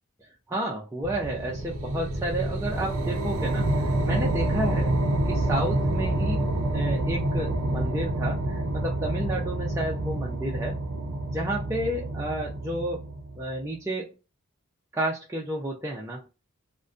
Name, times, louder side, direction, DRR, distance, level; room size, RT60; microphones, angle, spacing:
voice 1, 0.5-4.9 5.2-10.8 11.3-13.0 13.4-14.1 14.9-16.3, right 1 dB, 15° right, -2 dB, 0.4 m, -31 dB
sound 1, 1.0-13.5, right 1 dB, 75° right, 0.5 m, -28 dB
2.5 x 2.1 x 2.4 m, 0.29 s
head